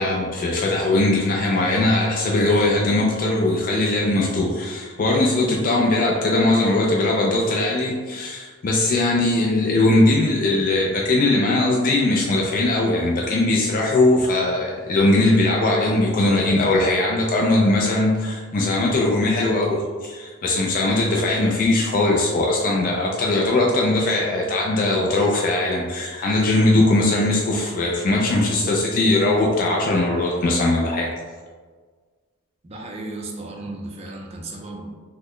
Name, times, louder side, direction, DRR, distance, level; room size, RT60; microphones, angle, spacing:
voice 1, 0.0-31.1, left 2 dB, 40° left, -2 dB, 0.3 m, -20 dB
voice 2, 32.6-34.9, right 2 dB, 30° right, 0 dB, 0.4 m, -35 dB
3.9 x 2.1 x 3.1 m, 1.5 s
head